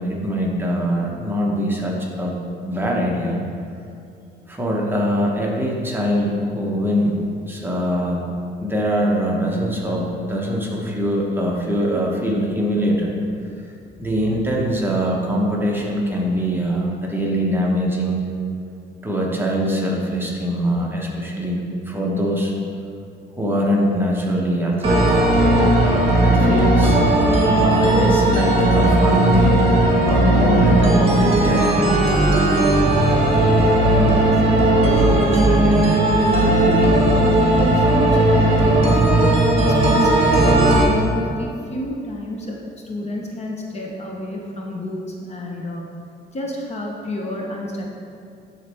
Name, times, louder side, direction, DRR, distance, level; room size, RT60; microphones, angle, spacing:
voice 1, 0.0-2.4 2.7-3.4 4.5-7.2 7.5-8.3 8.6-13.2 14.0-18.2 19.0-22.5 23.4-25.3 26.2-27.0 27.4-29.6 30.1-32.0, equal, 10° right, -3 dB, 1.0 m, -22 dB
sound 1, 24.8-40.8, right 1 dB, 30° right, 1.6 m, -16 dB
voice 2, 33.9-36.0 36.3-39.2 39.8-42.6 42.9-45.9 46.3-47.8, left 1 dB, 35° left, -1 dB, 1.0 m, -29 dB
11.5 x 4.1 x 3.5 m, 2.5 s
cardioid pair, 115°, 19 cm